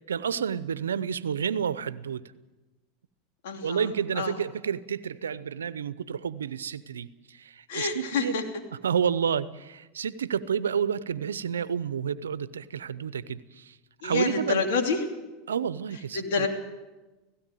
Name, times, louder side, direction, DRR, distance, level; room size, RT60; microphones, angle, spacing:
voice 1, 0.0-2.2 3.6-8.4 8.8-13.8 14.0-14.6 15.5-16.5, right 7 dB, 90° right, 17 dB, 0.7 m, -30 dB
voice 2, 3.4-3.9 4.1-4.4 7.7-8.4 14.0-15.0 16.1-16.5, left 5 dB, 70° left, 4 dB, 3.0 m, -27 dB
17.0 x 17.0 x 9.1 m, 1.1 s
hypercardioid pair, 95°, 0 cm